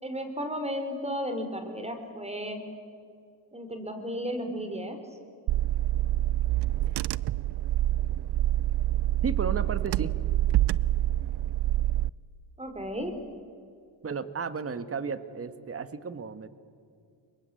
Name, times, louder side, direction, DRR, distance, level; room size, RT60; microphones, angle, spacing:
voice 1, 0.0-2.6 3.5-5.0 12.6-13.1, equal, 15° right, 7 dB, 4.1 m, -34 dB
Car / Engine, 5.5-12.1, right 14 dB, 55° right, 0.6 m, -26 dB
voice 2, 9.2-10.1 14.0-16.5, right 5 dB, 30° right, 13 dB, 1.5 m, -33 dB
24.5 x 22.0 x 8.4 m, 2.3 s
supercardioid pair, 75°, 47 cm